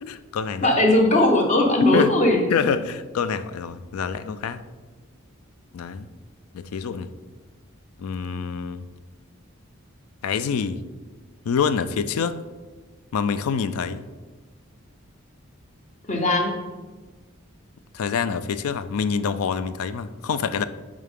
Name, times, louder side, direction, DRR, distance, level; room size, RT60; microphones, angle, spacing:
voice 1, 0.0-0.8 1.9-2.1 2.5-4.6 5.7-6.1 6.5-7.1 8.0-8.8 10.2-10.8 11.5-12.4 13.1-14.1 17.9-20.6, left 6 dB, 90° left, 13 dB, 0.4 m, -26 dB
voice 2, 0.6-2.5 16.1-16.6, left 1 dB, 35° left, 3 dB, 0.8 m, -19 dB
8.4 x 3.7 x 3.6 m, 1.3 s
head